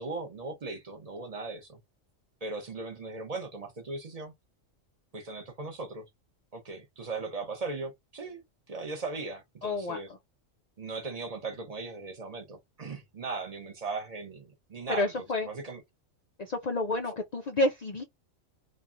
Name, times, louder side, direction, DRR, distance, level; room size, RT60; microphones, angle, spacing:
voice 1, 0.0-1.8 2.4-4.3 5.1-6.1 6.5-8.4 8.7-10.1 10.8-15.8, right 3 dB, 35° right, 0.7 m, -38 dB
voice 2, 9.6-10.0 14.9-15.5 16.4-18.0, left 2 dB, 85° left, 0.3 m, -29 dB
3.1 x 2.5 x 2.4 m
omnidirectional pair, 1.3 m